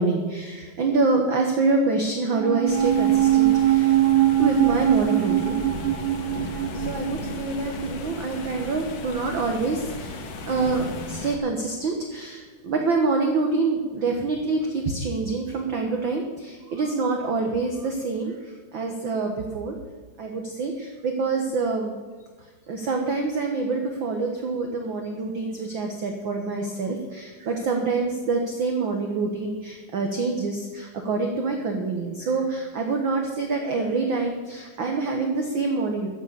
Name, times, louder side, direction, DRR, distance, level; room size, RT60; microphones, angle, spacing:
voice 1, 0.0-4.0 4.4-5.6 6.4-19.7 20.2-21.9 22.7-36.1, right 3 dB, 55° right, 3 dB, 1.3 m, -26 dB
sound 1, 2.3-8.9 9.1-9.2, right 13 dB, 75° right, 1.9 m, -22 dB
sound 2, 2.7-11.4, left 3 dB, 60° left, 2.2 m, -36 dB
14.0 x 8.1 x 6.8 m, 1.5 s
omnidirectional pair, 3.8 m